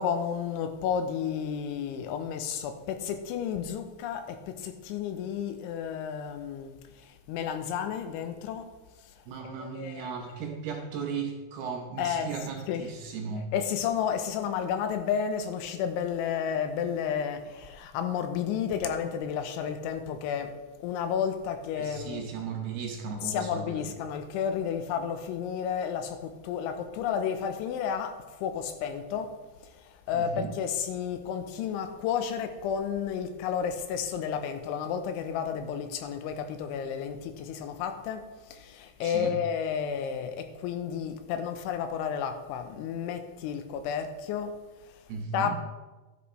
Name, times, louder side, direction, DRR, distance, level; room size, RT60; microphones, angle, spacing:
voice 1, 0.0-6.7 7.3-8.7 9.4-10.6 12.0-12.4 12.7-12.9 13.5-20.5 20.8-22.3 23.2-28.1 28.4-29.3 30.1-38.2 38.5-44.5 45.3-45.6, left 8 dB, 90° left, 7 dB, 3.2 m, -32 dB
voice 2, 9.3-13.5 21.8-23.9 30.1-30.5 39.0-39.4 45.1-45.6, right 5 dB, 75° right, 2 dB, 2.4 m, -36 dB
13.0 x 10.5 x 3.2 m, 1.2 s
omnidirectional pair, 5.3 m